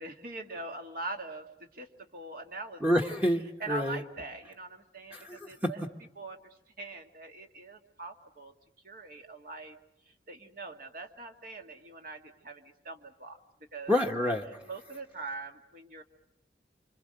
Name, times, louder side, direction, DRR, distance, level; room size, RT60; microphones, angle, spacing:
voice 1, 0.0-2.8 3.6-5.8 6.2-8.5 8.8-9.8 10.1-13.4 13.7-13.9 14.6-16.0, right 3 dB, 55° right, 4 dB, 2.0 m, -42 dB
voice 2, 2.8-4.0 5.1-5.7 13.9-14.6, left 1 dB, 10° right, 0 dB, 1.1 m, -28 dB
26.5 x 26.0 x 6.5 m, 0.84 s
head